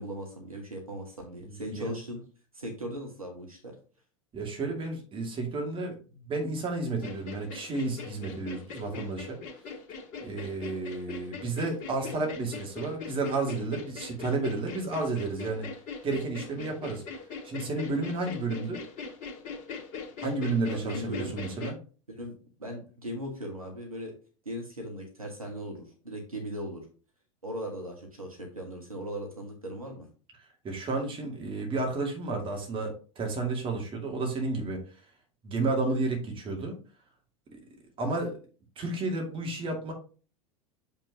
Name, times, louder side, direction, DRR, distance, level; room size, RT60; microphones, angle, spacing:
voice 1, 0.0-2.2 2.5-3.7 20.7-21.3 22.1-22.3 22.6-24.1 24.4-26.8 27.4-30.1, equal, 85° right, 2 dB, 1.7 m, -38 dB
voice 2, 1.4-1.9 4.3-9.4 10.2-15.7 16.0-17.0 17.4-18.8 20.2-21.8 30.6-34.8 35.4-36.8 37.5-37.6 38.0-38.4 38.8-39.9, right 3 dB, 30° right, 1 dB, 2.3 m, -31 dB
sound 1, 7.0-21.7, left 5 dB, 45° left, 1.9 m, -41 dB
6.9 x 5.3 x 2.9 m, 0.38 s
figure-of-eight pair, 80°, 18 cm